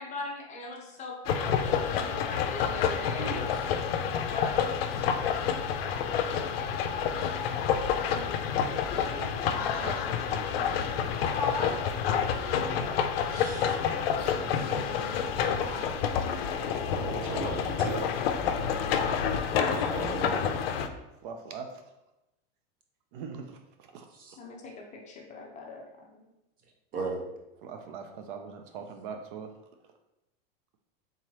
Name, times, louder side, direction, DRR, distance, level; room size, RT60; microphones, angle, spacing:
voice 1, 0.0-3.4 4.1-4.6 7.9-9.4 11.3-11.8 15.6-17.0 24.4-25.8 26.1-26.2, left 3 dB, 25° left, 0 dB, 0.6 m, -40 dB
sound 1, 1.3-20.9, left 7 dB, 80° left, 0.5 m, -29 dB
voice 2, 3.2-3.6 13.3-13.8 16.9-18.1 19.7-20.5 24.1-24.4 26.9-27.2, right 3 dB, 30° right, 0 dB, 0.7 m, -36 dB
voice 3, 9.2-11.4 13.0-13.1 14.0-16.0 19.5-19.6 21.2-21.8 23.1-23.6 23.9-24.1 27.6-29.5, right 6 dB, 60° right, 5 dB, 0.5 m, -43 dB
3.7 x 3.0 x 2.9 m, 0.93 s
supercardioid pair, 130°, 30 cm